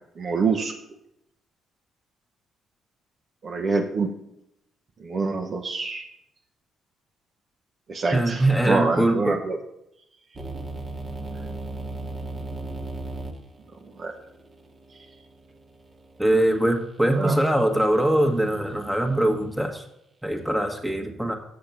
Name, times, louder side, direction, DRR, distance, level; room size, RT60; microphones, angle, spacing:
voice 1, 0.2-0.7 3.4-4.1 5.0-6.0 7.9-9.6 14.0-14.1 17.2-17.4, right 4 dB, 50° right, 2 dB, 1.0 m, -26 dB
voice 2, 8.1-9.4 16.2-19.8 20.2-21.4, right 1 dB, 5° right, 3 dB, 1.4 m, -22 dB
sound 1, 10.3-16.3, right 2 dB, 30° right, 1.4 m, -37 dB
6.8 x 6.7 x 5.8 m, 0.81 s
cardioid pair, 80°, 0 cm